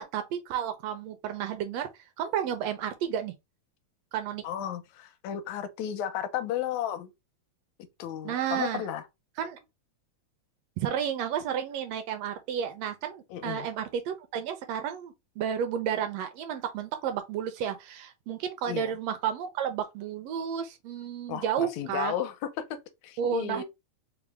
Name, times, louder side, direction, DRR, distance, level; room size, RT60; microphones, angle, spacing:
voice 1, 0.0-1.9 2.2-3.3 4.1-4.4 8.2-8.8 9.4-9.6 10.8-22.1 23.2-23.6, right 9 dB, 80° right, 1.5 m, -32 dB
voice 2, 4.4-7.1 8.0-9.0 13.3-13.7 18.7-18.9 21.3-23.6, left 10 dB, 80° left, 1.9 m, -34 dB
4.8 x 2.0 x 3.3 m
omnidirectional pair, 3.3 m